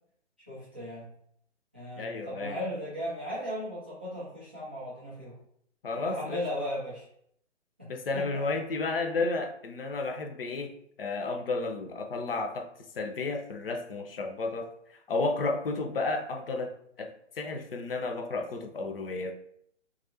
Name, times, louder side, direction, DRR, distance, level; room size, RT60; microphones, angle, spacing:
voice 1, 0.5-1.1 1.7-5.4 5.9-7.0 7.8-8.7, equal, 10° right, -10 dB, 0.4 m, -37 dB
voice 2, 2.0-2.6 5.8-6.4 7.9-10.7 11.0-12.7 13.0-14.7 15.1-16.7 17.0-17.1 17.4-19.3, left 3 dB, 50° left, 5 dB, 0.8 m, -32 dB
6.0 x 2.6 x 2.8 m, 0.69 s
figure-of-eight pair, 130°, 36 cm